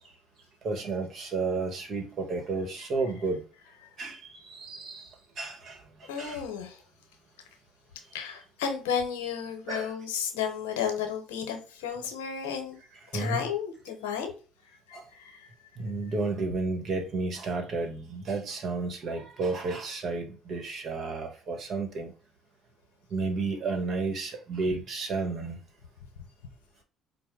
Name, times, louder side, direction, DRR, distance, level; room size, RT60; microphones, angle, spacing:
voice 1, 0.6-3.4 4.0-6.4 9.7-9.9 13.1-13.4 14.9-15.0 15.8-22.1 23.1-25.6, right 3 dB, 55° right, 1.2 m, -32 dB
voice 2, 6.1-6.8 8.1-12.8 13.1-14.3 14.7-15.5, left 7 dB, 90° left, 0.8 m, -33 dB
4.5 x 2.1 x 3.6 m
supercardioid pair, 70°, 0 cm